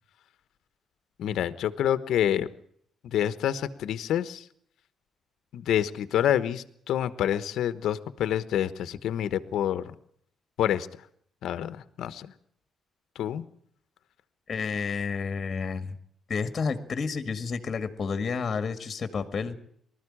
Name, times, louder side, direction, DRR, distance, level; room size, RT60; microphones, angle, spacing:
voice 1, 1.2-2.5 3.0-4.4 5.5-9.9 10.6-10.9 11.4-12.3 13.2-13.4, left 10 dB, 75° left, 13 dB, 1.1 m, -27 dB
voice 2, 14.5-16.0 16.3-19.6, left 5 dB, 40° left, 10 dB, 1.9 m, -30 dB
20.0 x 13.5 x 9.9 m, 0.67 s
cardioid pair, 90°, 0 cm